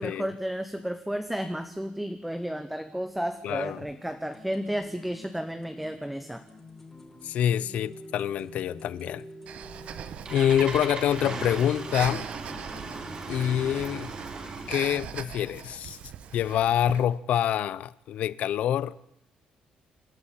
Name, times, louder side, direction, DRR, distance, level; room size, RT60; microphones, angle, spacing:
voice 1, 0.0-6.4, equal, 5° right, 1.1 m, -32 dB
voice 2, 3.4-3.8 7.2-9.2 10.3-12.3 13.3-14.1 14.7-16.0 16.3-19.0, left 10 dB, 65° left, 0.7 m, -26 dB
sound 1, 3.7-15.3, left 1 dB, 15° left, 3.7 m, -48 dB
Breathing, 9.5-17.1, right 8 dB, 55° right, 1.2 m, -41 dB
Engine starting, 9.8-14.9, right 4 dB, 35° right, 3.0 m, -38 dB
27.0 x 13.0 x 8.9 m
cardioid pair, 155°, 3 cm